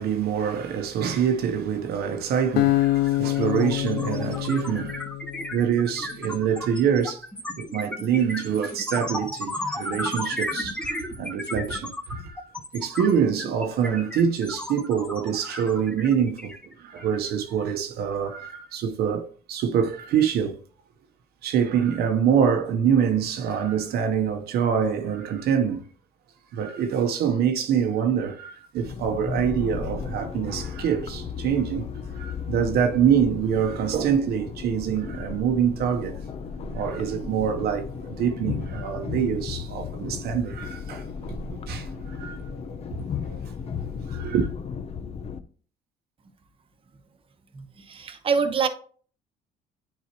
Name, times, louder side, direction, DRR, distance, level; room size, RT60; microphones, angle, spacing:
voice 1, 0.0-5.0 5.5-7.2 7.6-20.6 21.4-25.9 26.5-31.9 32.1-36.2 36.7-41.0 41.5-42.5 42.9-43.4 44.1-44.5, right 8 dB, 70° right, 0.9 m, -25 dB
sound 1, 2.4-2.5 2.8-17.2, left 1 dB, 5° left, 0.9 m, -34 dB
Acoustic guitar, 2.6-5.8, left 15 dB, 80° left, 0.5 m, -25 dB
sound 2, 28.8-45.4, left 6 dB, 35° left, 0.6 m, -35 dB
voice 2, 47.5-48.7, right 5 dB, 30° right, 1.0 m, -25 dB
9.5 x 4.0 x 2.9 m
cardioid pair, 110°, 17 cm